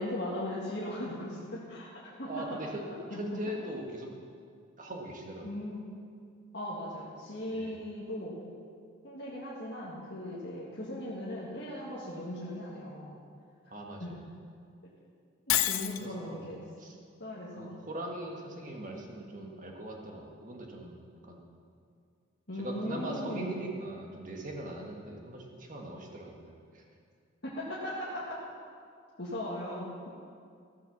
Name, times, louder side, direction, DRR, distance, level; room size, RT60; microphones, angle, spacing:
voice 1, 0.0-1.9 2.2-2.6 3.1-3.4 5.4-5.9 6.5-8.4 9.0-13.2 14.0-14.1 15.5-16.6 17.2-17.8 22.5-23.6 27.4-28.4 29.2-30.2, left 1 dB, 55° left, -7 dB, 1.9 m, -38 dB
voice 2, 2.3-2.8 3.1-4.1 4.8-5.6 7.5-7.8 13.7-14.2 16.0-16.5 16.8-17.0 17.5-21.5 22.5-26.8, right 1 dB, 40° right, 0 dB, 1.6 m, -41 dB
Shatter, 15.5-16.0, left 13 dB, 85° left, 0.5 m, -27 dB
16.0 x 6.2 x 7.0 m, 2.3 s
head